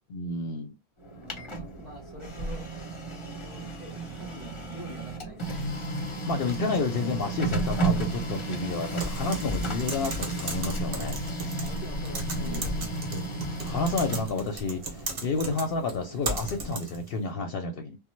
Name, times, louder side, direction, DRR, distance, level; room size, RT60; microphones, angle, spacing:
voice 1, 0.1-0.7 6.3-11.4 12.3-12.7 13.6-18.0, left 3 dB, 65° left, 0.7 m, -30 dB
Printer, 1.0-16.8, right 3 dB, 30° left, 0.8 m, -34 dB
voice 2, 1.2-2.7 3.1-5.8 11.6-13.3 14.5-14.6, equal, ahead, 1.5 m, -46 dB
Typing, 9.0-17.1, right 1 dB, 60° right, 1.1 m, -35 dB
3.0 x 2.1 x 3.0 m
omnidirectional pair, 1.1 m